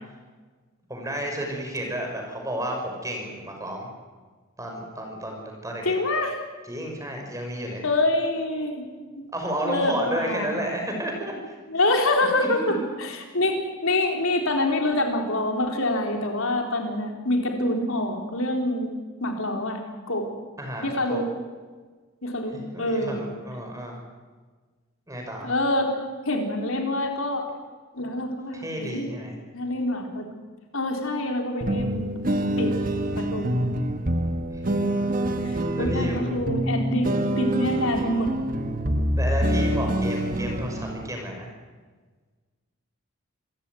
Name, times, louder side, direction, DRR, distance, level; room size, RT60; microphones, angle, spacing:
voice 1, 0.9-3.9 4.6-5.9 6.6-7.8 9.3-11.6 12.3-12.8 20.6-21.3 22.5-24.0 25.1-25.5 28.5-29.4 34.5-34.9 35.8-36.2 39.2-41.5, right 1 dB, 15° right, 2 dB, 5.7 m, -32 dB
voice 2, 5.9-6.4 7.8-8.9 9.2-9.3 9.7-10.6 11.7-18.9 19.2-19.8 20.1-20.3 20.8-21.3 22.2-23.2 25.4-25.9 26.3-27.4 27.9-29.1 29.5-30.2 30.7-32.1 32.6-32.8 33.2-33.7 35.4-38.3, left 1 dB, 70° left, 3 dB, 4.1 m, -26 dB
sound 1, 31.6-41.1, right 1 dB, 40° right, 1.5 m, -26 dB
27.0 x 15.5 x 9.4 m, 1.4 s
head